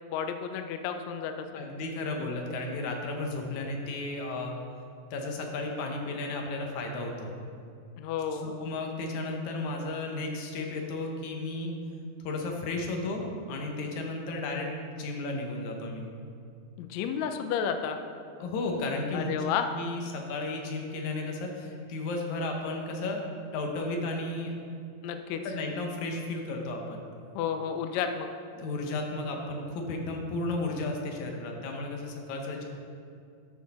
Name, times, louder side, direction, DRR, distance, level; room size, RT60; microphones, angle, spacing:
voice 1, 0.1-1.5 8.0-8.5 16.8-18.0 19.1-19.7 25.0-25.4 27.3-28.3, left 7 dB, 85° left, 7 dB, 1.5 m, -31 dB
voice 2, 1.5-4.6 5.1-7.3 8.3-11.7 12.2-16.1 18.4-19.4 19.7-23.2 23.5-24.6 25.3-27.0 28.6-32.7, left 2 dB, 70° left, 1 dB, 2.3 m, -34 dB
11.5 x 6.5 x 4.2 m, 2.5 s
omnidirectional pair, 3.8 m